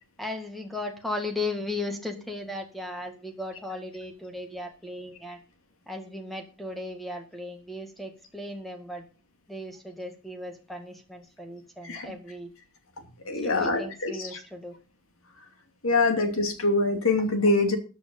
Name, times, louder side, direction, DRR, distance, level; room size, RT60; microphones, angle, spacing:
voice 1, 0.2-5.4 5.9-9.0 9.5-12.5 13.4-14.8, left 2 dB, ahead, 4 dB, 2.0 m, -36 dB
voice 2, 13.2-14.4 15.8-17.8, left 2 dB, 65° left, 6 dB, 2.7 m, -24 dB
14.0 x 8.3 x 5.4 m, 0.36 s
head